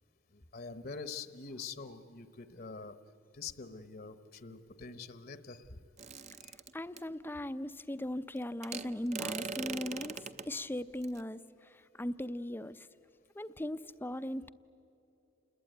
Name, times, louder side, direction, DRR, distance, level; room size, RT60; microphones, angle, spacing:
voice 1, 0.3-3.0 3.3-5.8 6.4-6.5, left 4 dB, 45° left, 12 dB, 1.0 m, -45 dB
sound 1, 6.0-7.0 8.6-10.5 11.0-11.2, right 5 dB, 35° right, 0.7 m, -40 dB
voice 2, 6.7-12.9 13.4-14.5, left 1 dB, 10° left, 13 dB, 0.5 m, -39 dB
28.5 x 20.5 x 9.1 m, 2.9 s
head